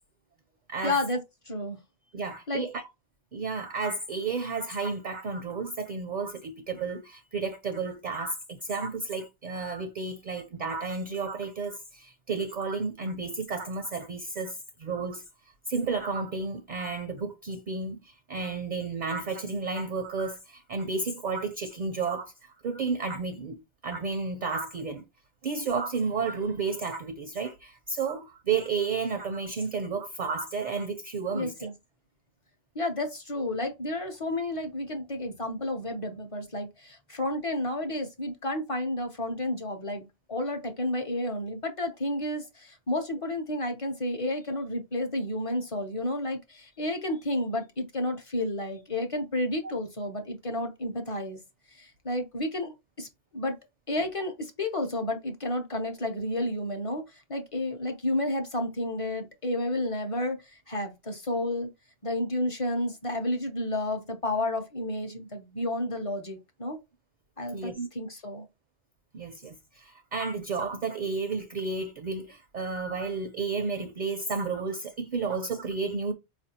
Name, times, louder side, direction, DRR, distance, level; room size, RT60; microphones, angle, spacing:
voice 1, 0.8-1.2 1.5-1.8 2.5-2.6 31.3-31.7 32.7-51.4 51.7-52.7 53.0-53.1 53.3-53.6 53.9-61.7 62.0-66.8 67.4-68.5, left 1 dB, 40° left, 0.6 m, -31 dB
voice 2, 2.1-2.8 3.3-15.2 15.7-25.0 25.4-31.7 67.5-67.9 69.1-76.1, right 4 dB, 55° right, 0.5 m, -32 dB
4.5 x 2.5 x 2.7 m
omnidirectional pair, 1.1 m